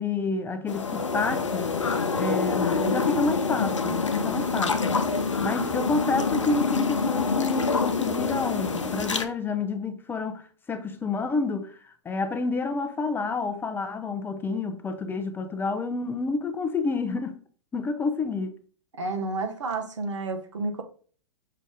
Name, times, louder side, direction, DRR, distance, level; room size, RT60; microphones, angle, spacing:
voice 1, 0.0-1.7 2.2-5.0 5.4-17.4 17.7-18.6, left 4 dB, 15° left, 0.5 m, -29 dB
sound 1, 0.7-9.2, left 4 dB, 90° left, 0.5 m, -26 dB
voice 2, 19.0-20.8, right 3 dB, 80° right, 0.9 m, -30 dB
5.5 x 2.5 x 3.5 m
hypercardioid pair, 110°, 15 cm